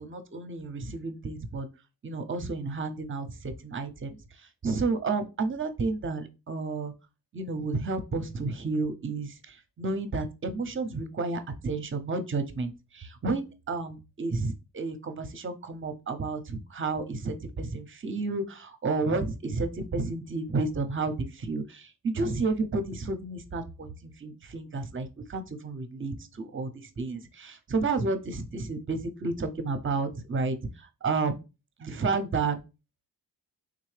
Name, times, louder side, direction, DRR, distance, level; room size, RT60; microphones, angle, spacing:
voice 1, 0.0-1.7 2.0-6.9 7.3-31.4 31.8-32.6, right 3 dB, 30° right, 9 dB, 0.6 m, -31 dB
3.7 x 2.7 x 3.2 m, 0.29 s
cardioid pair, 80°, 39 cm